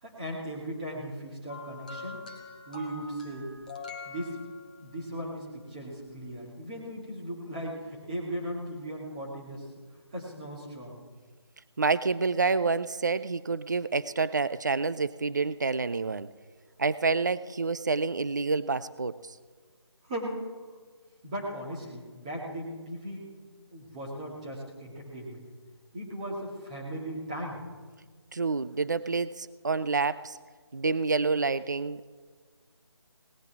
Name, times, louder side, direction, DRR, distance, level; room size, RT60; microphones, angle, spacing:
voice 1, 0.0-2.2 2.7-3.5 4.0-4.4 4.8-9.7 10.1-11.0 20.0-20.4 21.2-23.3 23.7-25.4 25.9-27.6, right 1 dB, 15° right, -5 dB, 2.2 m, -37 dB
sound 1, 1.5-5.0 6.1-6.2, left 4 dB, 20° left, 0.7 m, -44 dB
voice 2, 11.8-16.3 16.8-19.1 28.3-30.4 30.7-32.1, right 4 dB, 40° right, 16 dB, 0.4 m, -28 dB
18.5 x 16.5 x 3.5 m, 1.5 s
figure-of-eight pair, 175°, 14 cm